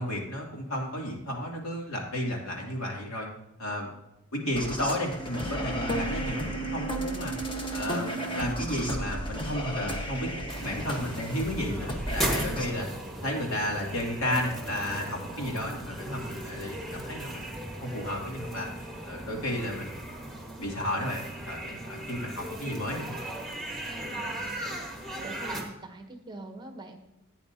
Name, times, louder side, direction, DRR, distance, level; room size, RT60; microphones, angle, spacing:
voice 1, 0.0-3.3 3.6-3.9 4.3-7.3 7.7-10.3 10.6-12.9 13.2-18.7 19.1-20.1 20.6-23.1, left 1 dB, 65° left, -1 dB, 2.6 m, -33 dB
sound 1, 4.5-12.7, right 1 dB, 20° left, 1.1 m, -33 dB
sound 2, 10.5-25.6, right 1 dB, ahead, 1.5 m, -37 dB
voice 2, 22.1-22.6 23.9-24.6 25.2-27.0, right 2 dB, 20° right, 6 dB, 0.9 m, -44 dB
16.0 x 9.1 x 2.7 m, 0.91 s
head